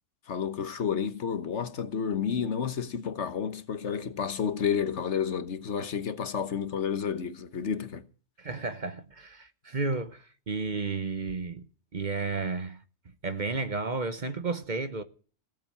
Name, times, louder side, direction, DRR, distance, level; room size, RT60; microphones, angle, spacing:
voice 1, 0.3-8.0, left 7 dB, 65° left, 1.4 m, -30 dB
voice 2, 8.4-11.7 11.9-12.8 13.2-15.0, right 3 dB, 40° right, 1.0 m, -32 dB
17.0 x 7.6 x 8.8 m
omnidirectional pair, 1.3 m